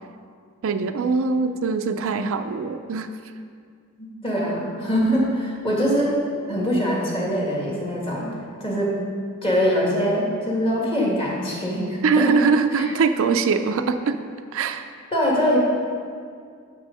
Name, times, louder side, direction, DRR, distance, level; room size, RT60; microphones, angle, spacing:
voice 1, 0.6-3.1 12.0-14.2 14.5-14.9, right 5 dB, 65° right, 8 dB, 0.4 m, -22 dB
voice 2, 4.0-8.3 8.6-9.0 9.4-12.4 15.1-15.6, equal, 25° left, -4 dB, 2.0 m, -23 dB
7.7 x 6.2 x 5.4 m, 2.1 s
head